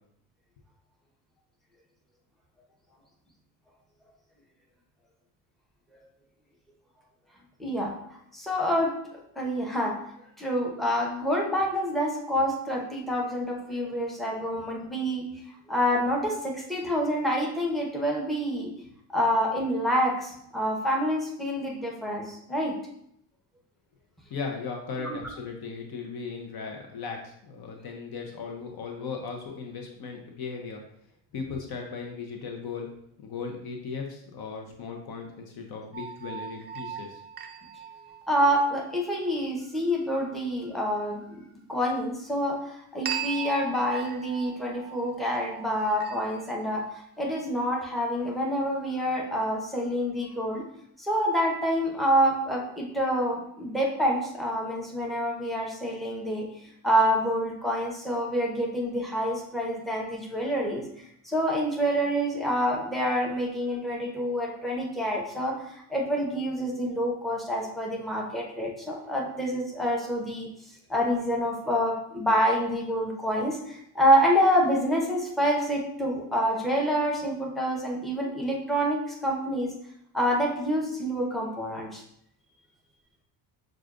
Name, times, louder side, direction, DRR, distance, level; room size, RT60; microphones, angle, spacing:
voice 1, 7.6-8.0 8.3-8.9 9.4-10.0 10.4-15.3 15.7-18.7 19.1-22.7 38.3-46.8 47.2-50.6 51.0-56.4 56.8-60.9 61.2-70.5 70.9-79.7 80.1-82.0, equal, ahead, -2 dB, 0.9 m, -27 dB
voice 2, 24.3-30.8 31.3-32.9 33.2-37.2, left 5 dB, 55° left, 2 dB, 0.8 m, -37 dB
sound 1, 35.9-38.8 43.1-46.6, right 8 dB, 25° right, 0.3 m, -38 dB
6.2 x 2.4 x 2.5 m, 0.72 s
supercardioid pair, 85°, 46 cm